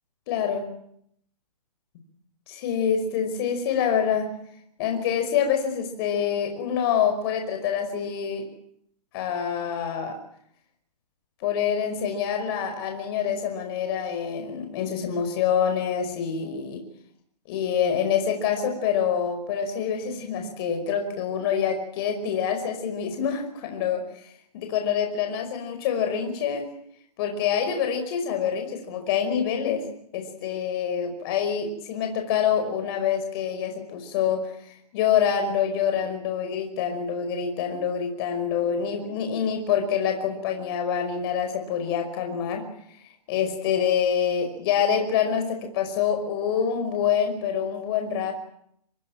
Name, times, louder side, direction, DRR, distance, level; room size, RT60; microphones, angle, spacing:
voice 1, 0.3-0.7 2.5-4.4 4.8-8.5 9.1-10.2 11.4-16.8 17.5-26.7 27.2-29.9 30.1-34.5 34.9-42.7 43.3-48.3, left 8 dB, 35° left, 5 dB, 5.4 m, -26 dB
26.0 x 20.5 x 9.0 m, 0.70 s
hypercardioid pair, 150°, 21 cm